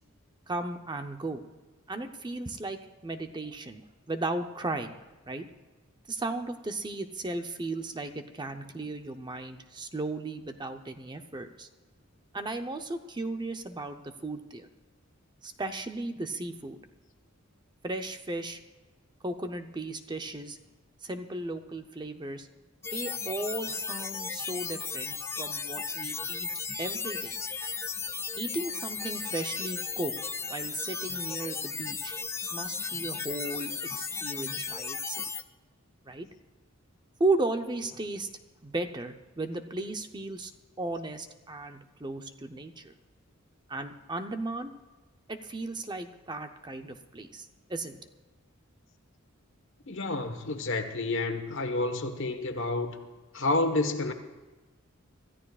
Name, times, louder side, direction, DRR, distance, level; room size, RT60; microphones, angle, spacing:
voice 1, 0.5-1.4 1.9-5.0 5.3-5.4 6.1-11.7 12.3-14.7 15.4-16.8 17.8-18.6 19.2-20.6 21.0-22.5 22.9-26.5 26.8-27.3 28.4-30.1 30.5-32.1 32.5-35.3 36.1-36.3 37.2-38.3 38.6-40.5 40.8-42.9 43.7-44.7 45.3-48.0, right 2 dB, 20° right, 0.7 m, -35 dB
sound 1, 22.8-35.4, left 5 dB, 10° left, 0.4 m, -35 dB
voice 2, 49.9-53.0 53.3-54.1, left 2 dB, 65° left, 1.3 m, -29 dB
26.0 x 14.0 x 2.4 m
head